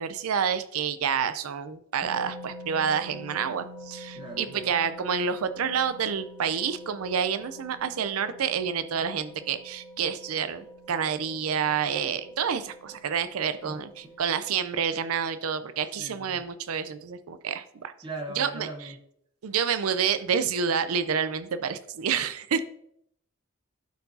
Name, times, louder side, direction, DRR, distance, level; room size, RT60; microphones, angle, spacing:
voice 1, 0.0-17.9 18.4-18.7 19.4-22.6, right 7 dB, 85° right, 12 dB, 0.5 m, -28 dB
sound 1, 2.0-14.2, equal, 5° right, 1.5 m, -46 dB
voice 2, 4.1-4.7 13.6-13.8 16.0-16.4 18.0-19.0, right 2 dB, 20° right, -1 dB, 1.1 m, -39 dB
12.5 x 4.5 x 2.7 m, 0.72 s
head